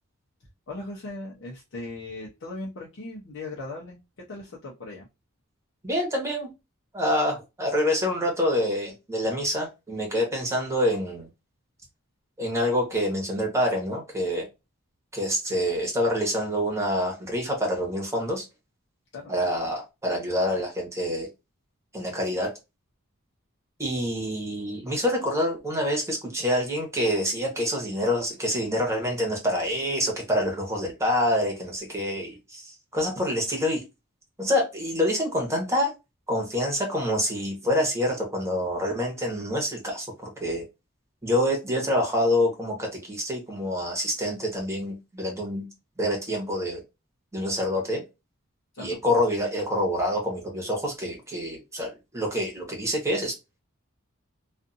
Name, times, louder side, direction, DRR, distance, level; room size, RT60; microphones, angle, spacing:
voice 1, 0.7-4.0 4.3-5.1 19.1-19.3 48.7-49.0, left 2 dB, 60° left, 0.7 m, -38 dB
voice 2, 5.8-6.5 6.9-11.3 12.4-14.5 15.1-18.4 19.3-21.3 21.9-22.5 23.8-33.8 34.4-35.9 36.3-40.6 41.2-45.7 46.0-46.8 47.3-48.0 48.8-53.3, left 1 dB, 15° right, 1.1 m, -26 dB
2.5 x 2.5 x 2.5 m
head